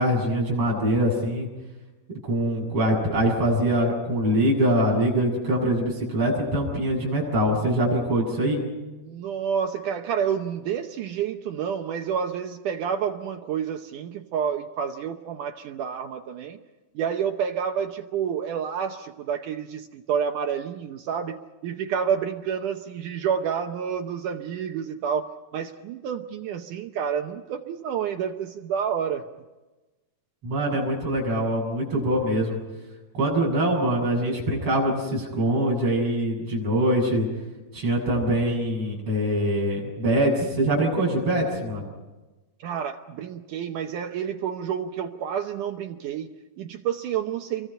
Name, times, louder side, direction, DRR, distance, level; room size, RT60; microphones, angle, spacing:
voice 1, 0.0-1.5 2.3-8.6 30.4-32.6 33.1-37.3 37.7-41.9, right 1 dB, 30° right, -3 dB, 8.4 m, -23 dB
voice 2, 9.0-16.6 17.0-21.4 21.6-29.2 42.6-47.7, right 8 dB, 80° right, 5 dB, 1.8 m, -29 dB
29.0 x 23.5 x 5.6 m, 1.1 s
omnidirectional pair, 4.9 m